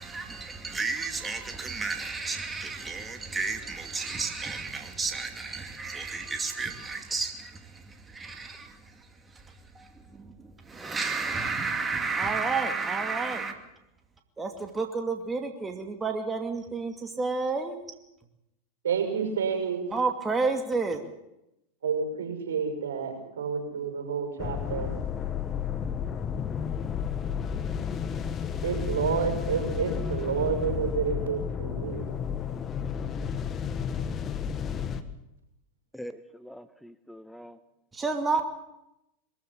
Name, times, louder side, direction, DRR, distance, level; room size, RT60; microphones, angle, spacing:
voice 1, 0.0-13.5 14.4-17.9 19.9-21.0 37.9-38.5, right 4 dB, 15° right, 2.5 m, -31 dB
voice 2, 18.8-19.9 21.8-24.9 28.6-32.1, right 6 dB, 80° right, 6.0 m, -29 dB
sound 1, 24.4-35.0, left 7 dB, 30° left, 1.6 m, -32 dB
voice 3, 35.9-37.6, equal, ahead, 0.9 m, -43 dB
22.5 x 14.5 x 8.6 m
hypercardioid pair, 100°, 0 cm